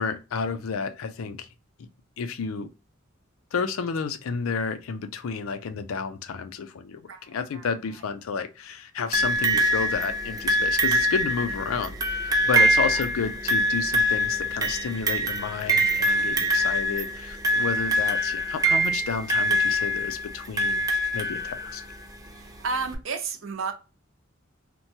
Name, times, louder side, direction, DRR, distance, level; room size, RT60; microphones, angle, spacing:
voice 1, 0.0-1.5 2.2-2.7 3.5-7.0 7.3-20.9 21.1-21.8, left 5 dB, 90° left, 0.4 m, -31 dB
voice 2, 7.1-7.7 7.9-8.0 12.5-13.1 16.0-16.8 17.6-17.9 22.3-23.7, right 4 dB, 70° right, 0.6 m, -34 dB
sound 1, 9.1-22.0 22.9-23.0, equal, 20° right, 0.4 m, -24 dB
2.9 x 2.2 x 2.7 m
head